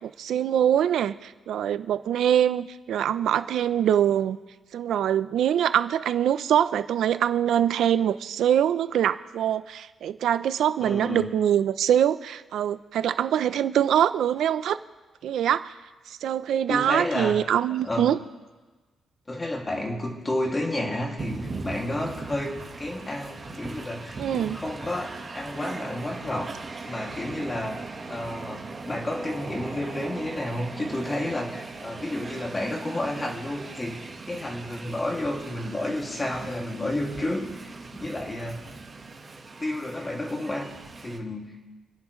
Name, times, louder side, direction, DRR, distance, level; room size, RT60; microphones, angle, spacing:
voice 1, 0.0-4.4 4.7-14.8 15.2-15.7 16.1-18.2 24.2-24.6, right 10 dB, 75° right, 13 dB, 0.6 m, -24 dB
voice 2, 10.8-11.4 16.7-17.4 17.7-18.2 19.3-27.8 28.1-38.6 39.6-40.7 41.0-41.6, left 1 dB, 20° left, 0 dB, 2.4 m, -31 dB
Train, 21.2-41.2, right 3 dB, 30° right, 1.5 m, -39 dB
29.0 x 10.5 x 3.2 m, 1.2 s
cardioid pair, 130°, 0 cm